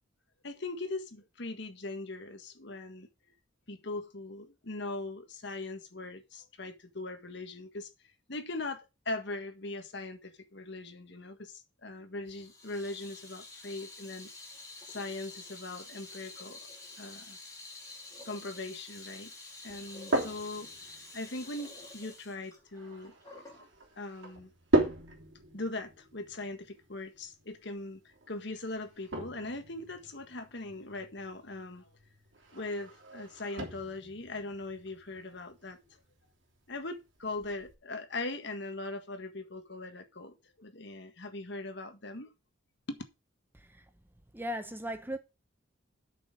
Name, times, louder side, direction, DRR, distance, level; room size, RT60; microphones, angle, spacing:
voice 1, 0.4-3.1 3.7-7.9 8.3-14.3 14.8-16.7 17.0-17.4 18.2-19.3 19.6-20.7 21.1-23.1 24.0-24.5 25.5-31.9 32.5-36.0 36.7-42.3 42.9-43.0, left 2 dB, 60° left, 1.7 m, -40 dB
Water tap faucet / Sink (filling or washing), 12.3-23.7, left 3 dB, 15° left, 5.3 m, -49 dB
sound 1, 19.7-37.7, right 1 dB, 65° right, 3.3 m, -38 dB
voice 2, 43.5-43.8 44.3-45.2, equal, 10° right, 0.7 m, -37 dB
8.8 x 6.5 x 5.2 m
head